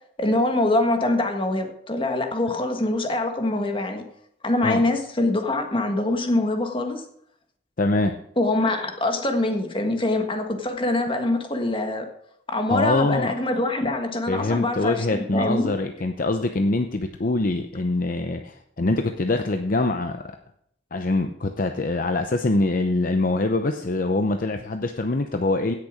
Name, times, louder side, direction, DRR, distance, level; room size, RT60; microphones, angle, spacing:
voice 1, 0.2-4.0 4.4-7.0 8.4-12.1 12.5-15.7, left 2 dB, 30° left, 5 dB, 1.5 m, -24 dB
voice 2, 7.8-8.2 12.7-13.3 14.3-20.2 20.9-25.7, left 2 dB, 50° left, 6 dB, 0.7 m, -24 dB
16.5 x 6.8 x 5.0 m, 0.70 s
head